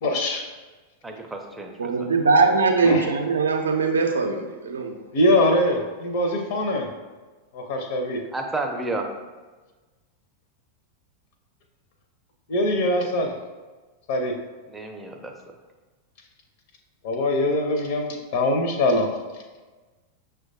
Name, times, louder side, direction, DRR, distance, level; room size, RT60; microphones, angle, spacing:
voice 1, 0.0-0.4 2.8-3.0 5.1-6.9 7.5-8.2 12.5-13.3 14.1-14.3 17.0-19.1, left 1 dB, 50° left, 4 dB, 0.5 m, -22 dB
voice 2, 1.0-2.1 8.3-9.1 14.7-15.3, right 2 dB, 10° right, 2 dB, 0.4 m, -31 dB
voice 3, 1.8-4.9, right 4 dB, 70° right, 4 dB, 0.4 m, -21 dB
5.9 x 2.2 x 2.6 m, 1.3 s
figure-of-eight pair, 90°, 0 cm